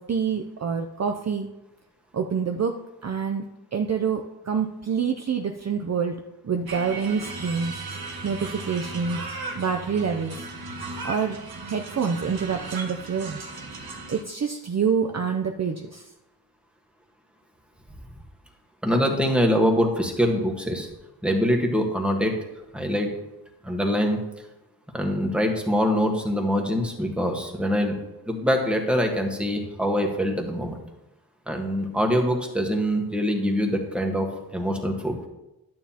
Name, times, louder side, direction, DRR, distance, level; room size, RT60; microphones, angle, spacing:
voice 1, 0.0-1.5 2.1-2.7 3.0-3.4 3.7-6.2 6.4-7.7 8.2-9.2 9.5-10.5 11.0-11.4 11.7-13.4 14.1-16.1, right 6 dB, 40° right, 4 dB, 0.5 m, -26 dB
sound 1, 6.7-14.2, right 3 dB, 60° right, 1.3 m, -36 dB
voice 2, 18.8-20.9 21.2-22.3 22.7-23.1 23.6-24.2 24.9-27.9 28.3-30.8 31.5-34.3 34.5-35.3, equal, 5° right, 1 dB, 1.3 m, -24 dB
11.0 x 9.4 x 2.9 m, 0.96 s
wide cardioid pair, 130°, 41 cm